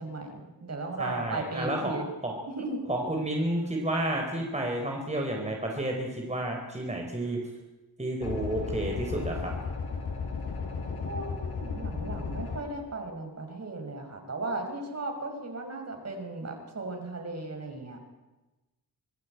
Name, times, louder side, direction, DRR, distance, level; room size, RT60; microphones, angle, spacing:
voice 1, 0.0-2.1 2.5-2.9 11.1-18.0, right 2 dB, 40° right, 4 dB, 5.9 m, -36 dB
voice 2, 1.0-1.9 2.2-2.3 2.9-7.4 8.0-9.5, right 1 dB, 15° right, 1 dB, 4.2 m, -31 dB
sound 1, 8.2-12.6, left 5 dB, 80° left, 7.1 m, -34 dB
25.5 x 19.5 x 9.2 m, 1.1 s
wide cardioid pair, 125°, 39 cm